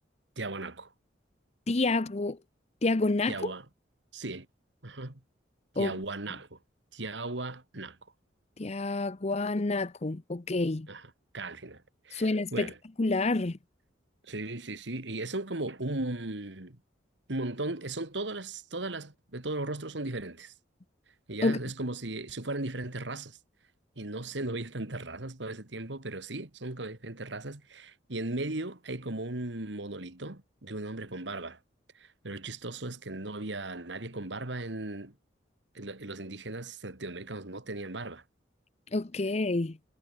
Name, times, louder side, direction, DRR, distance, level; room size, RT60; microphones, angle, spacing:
voice 1, 0.4-0.9 3.3-3.7 4.1-4.5 4.8-5.2 5.7-6.6 6.9-8.0 10.9-12.8 14.2-16.8 17.3-20.5 21.3-23.4 24.0-31.6 31.9-35.1 35.7-38.2, right 2 dB, 75° right, 2.3 m, -37 dB
voice 2, 1.7-2.4 2.8-3.3 5.8-5.9 8.6-10.9 12.1-12.7 13.0-13.6 21.4-21.6 38.9-39.8, left 2 dB, 35° left, 0.7 m, -28 dB
head